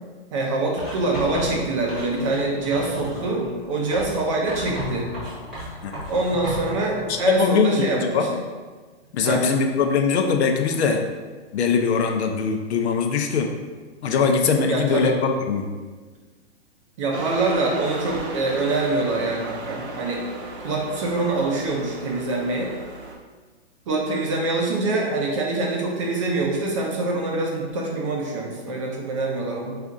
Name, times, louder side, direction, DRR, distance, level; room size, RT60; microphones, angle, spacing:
voice 1, 0.3-5.1 6.1-8.3 9.2-9.4 14.7-15.2 17.0-20.2 20.6-22.7 23.9-29.8, right 2 dB, 30° right, -2 dB, 0.5 m, -25 dB
Writing, 0.8-2.5 2.7-3.3 3.9-6.7, equal, ahead, 1.0 m, -35 dB
sound 1, 1.4-7.4, left 2 dB, 20° left, 0.7 m, -38 dB
voice 2, 7.1-7.7 8.1-8.3 9.1-11.0 11.5-13.5 14.0-15.7, left 5 dB, 80° left, 4 dB, 0.6 m, -21 dB
sound 2, 17.1-23.2, right 3 dB, 80° right, 0.7 m, -35 dB
4.1 x 2.4 x 2.5 m, 1.4 s
hypercardioid pair, 155°, 33 cm